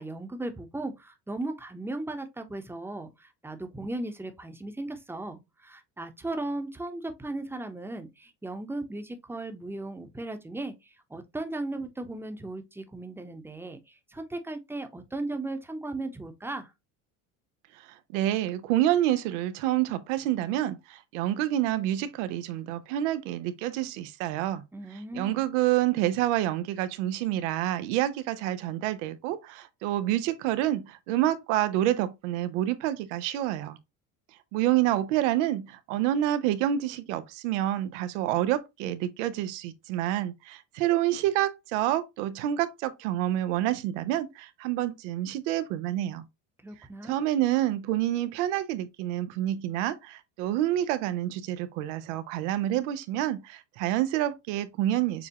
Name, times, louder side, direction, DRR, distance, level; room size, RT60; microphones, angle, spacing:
voice 1, 0.0-10.7 11.1-16.7 24.7-25.4 46.6-47.1, right 2 dB, 5° right, 0.9 m, -36 dB
voice 2, 18.1-24.6 24.9-33.8 34.5-46.3 47.0-55.3, right 13 dB, 90° right, 0.8 m, -28 dB
6.9 x 2.3 x 2.9 m
supercardioid pair, 110°, 35 cm